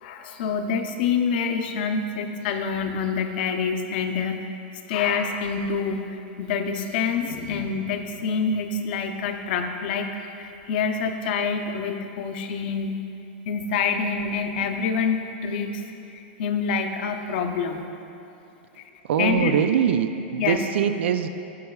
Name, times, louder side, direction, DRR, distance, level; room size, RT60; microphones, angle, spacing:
voice 1, 0.0-4.4 4.9-12.9 13.5-15.8 16.1-17.8 18.8-18.9 19.2-19.5 20.4-20.6, left 5 dB, 55° left, 5 dB, 0.7 m, -26 dB
voice 2, 19.0-21.3, right 8 dB, 85° right, 10 dB, 0.4 m, -23 dB
16.5 x 5.6 x 2.3 m, 2.8 s
supercardioid pair, 165°, 6 cm